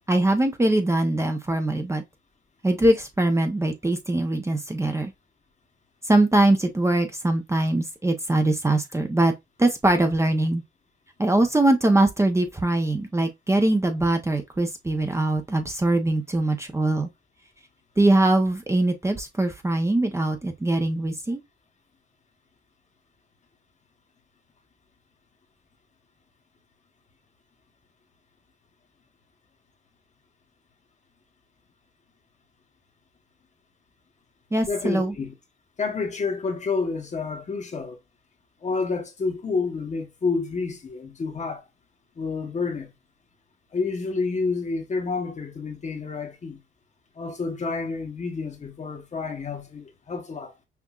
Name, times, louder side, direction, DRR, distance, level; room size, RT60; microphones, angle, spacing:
voice 1, 0.1-2.0 2.6-5.1 6.0-9.3 9.6-10.6 11.2-17.1 18.0-21.4 34.5-35.1, right 2 dB, 15° right, 0.7 m, -22 dB
voice 2, 34.6-35.3 35.8-38.0 38.6-41.6 42.2-42.9 43.7-46.6 47.2-50.5, left 4 dB, 35° left, 1.0 m, -29 dB
5.8 x 2.6 x 2.4 m
cardioid pair, 90°, 20 cm